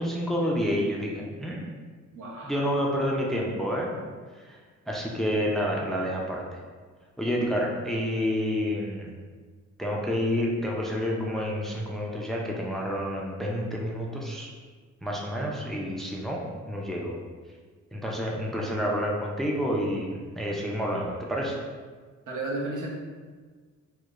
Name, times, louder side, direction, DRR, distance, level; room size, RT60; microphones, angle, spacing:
voice 1, 0.0-1.6 2.4-3.9 4.5-4.6 4.9-6.4 7.2-9.1 9.8-14.5 15.0-17.2 17.9-21.6, equal, ahead, -2 dB, 0.4 m, -29 dB
voice 2, 2.1-2.6 22.3-22.9, right 2 dB, 80° right, -3 dB, 0.9 m, -33 dB
4.6 x 2.1 x 2.4 m, 1.5 s
cardioid pair, 125°, 30 cm